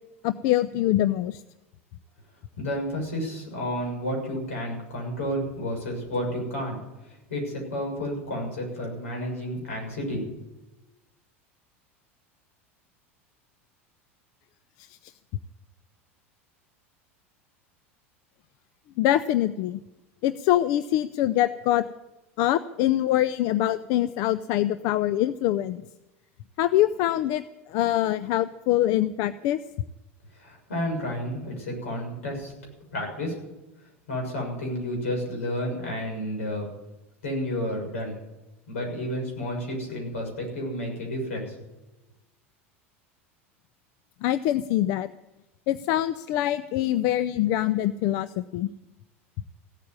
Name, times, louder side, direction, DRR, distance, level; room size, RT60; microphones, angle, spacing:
voice 1, 0.2-1.4 14.9-15.0 19.0-19.8 20.2-21.9 22.4-25.8 26.6-27.4 27.7-29.6 44.2-45.1 45.7-48.7, left 13 dB, 55° left, 14 dB, 0.5 m, -24 dB
voice 2, 2.6-6.8 7.0-10.2 30.3-32.5 32.9-33.4 34.1-36.7 37.2-38.2 38.7-41.5, equal, 85° left, 1 dB, 6.7 m, -31 dB
16.0 x 8.7 x 9.7 m, 1.0 s
hypercardioid pair, 85°, 7 cm